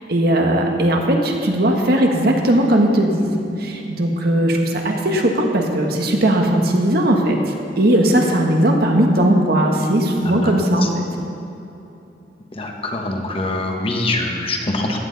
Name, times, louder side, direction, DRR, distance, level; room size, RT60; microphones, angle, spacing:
voice 1, 0.1-7.4 7.8-11.0, right 1 dB, 60° right, 1 dB, 1.5 m, -18 dB
voice 2, 12.6-15.0, left 2 dB, 35° left, 1 dB, 1.2 m, -24 dB
15.0 x 10.5 x 4.1 m, 2.9 s
head